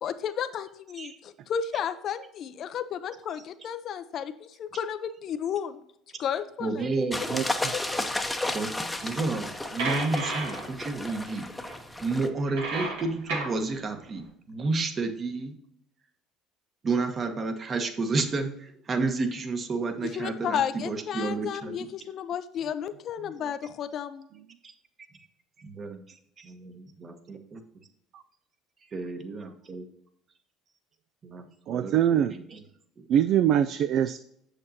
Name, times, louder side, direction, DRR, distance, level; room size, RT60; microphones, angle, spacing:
voice 1, 0.0-5.8 6.2-6.9 7.7-7.8 20.0-24.3, left 8 dB, 55° left, 11 dB, 0.5 m, -33 dB
voice 2, 6.6-7.2 7.5-7.6 8.3-8.7 9.0-11.4 12.0-15.5 16.8-21.7 24.6-24.7 25.1-25.3 25.6-26.0 26.4-27.6 28.9-29.8 31.2-32.6, right 3 dB, 40° right, 6 dB, 1.2 m, -31 dB
sound 1, 7.1-12.3, left 1 dB, 10° left, 0.8 m, -33 dB
sound 2, 9.1-9.2 9.4-9.5 9.8-11.1 11.5-11.8 12.3-13.6, right 3 dB, 85° right, 2.1 m, -32 dB
voice 3, 31.7-32.3 33.1-34.2, right 10 dB, 60° right, 10 dB, 0.3 m, -23 dB
7.4 x 6.5 x 2.8 m, 0.74 s
supercardioid pair, 75°, 0 cm